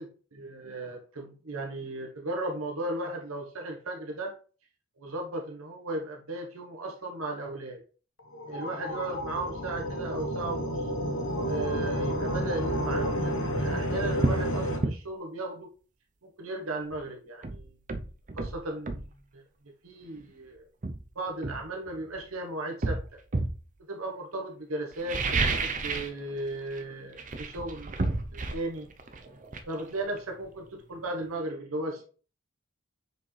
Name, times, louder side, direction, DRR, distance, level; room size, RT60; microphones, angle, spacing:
voice 1, 0.0-4.3 5.0-7.8 8.5-10.9 11.4-15.7 16.2-17.7 18.3-19.4 19.8-20.7 21.1-23.0 23.8-28.9 29.7-32.0, right 2 dB, 75° right, 1 dB, 1.1 m, -36 dB
sound 1, 8.2-14.8, equal, 60° left, 1.2 m, -30 dB
sound 2, 13.4-13.6 14.2-14.5 14.8-15.0 16.9-17.0 17.4-19.1 20.2-20.3 20.8-22.2 22.8-23.6 24.9-26.2 26.5-26.8 27.1-30.7 31.0-31.1, right 3 dB, 35° right, 0.6 m, -31 dB
6.2 x 5.0 x 3.2 m, 0.38 s
head